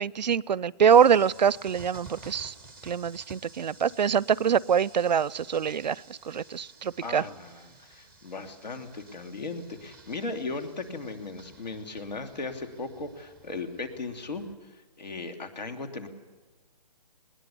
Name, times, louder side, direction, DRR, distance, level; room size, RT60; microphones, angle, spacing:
voice 1, 0.0-2.5 2.8-7.2, right 7 dB, 85° right, 24 dB, 0.5 m, -24 dB
sound 1, 0.9-14.6, right 3 dB, 5° left, 0.6 m, -53 dB
voice 2, 7.0-16.1, left 3 dB, 85° left, 5 dB, 2.9 m, -37 dB
21.0 x 19.5 x 7.0 m, 1.3 s
hypercardioid pair, 160°, 21 cm